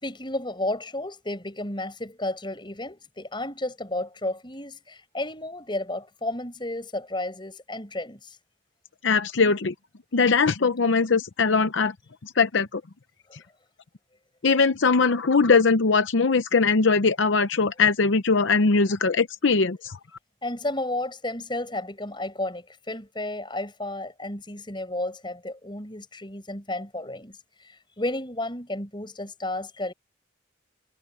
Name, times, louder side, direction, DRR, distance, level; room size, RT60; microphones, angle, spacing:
voice 1, 0.0-8.4 20.4-27.4 27.6-29.9, left 1 dB, 25° left, 5.4 m, -32 dB
voice 2, 9.0-9.7 10.1-11.9 12.2-12.8 14.4-20.0, left 4 dB, 70° left, 0.7 m, -21 dB
head